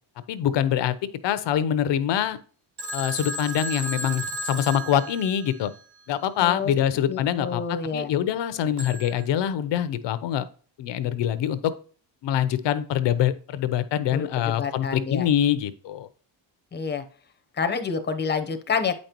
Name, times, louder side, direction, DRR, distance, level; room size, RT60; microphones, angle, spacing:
voice 1, 0.3-0.9 1.2-2.4 2.9-5.7 6.1-10.4 10.8-11.7 12.2-16.1, left 10 dB, 65° left, 13 dB, 0.8 m, -24 dB
Telephone, 2.8-5.8 8.8-9.2, right 1 dB, 60° right, 1.9 m, -34 dB
voice 2, 6.4-6.7 7.1-8.1 14.1-15.3 16.7-17.0 17.6-18.9, left 5 dB, 20° left, 8 dB, 0.8 m, -28 dB
8.6 x 5.3 x 2.9 m, 0.42 s
cardioid pair, 130°, 46 cm